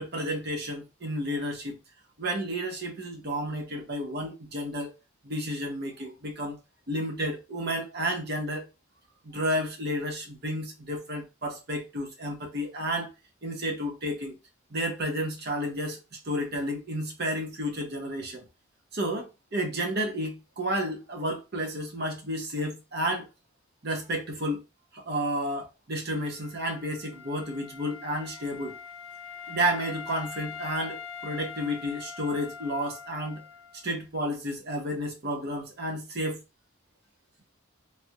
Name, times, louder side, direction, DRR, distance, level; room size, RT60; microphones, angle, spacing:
voice 1, 0.0-1.8 2.2-4.9 5.2-6.6 6.9-8.6 9.2-13.1 13.4-14.3 14.7-16.0 16.3-18.4 18.9-23.3 23.8-24.6 24.9-28.8 29.5-33.4 33.8-36.4, equal, 50° right, 0.8 m, -31 dB
Wind instrument woodwind instrument, 26.1-33.9, left 6 dB, 65° left, 0.4 m, -43 dB
3.1 x 2.4 x 2.8 m
head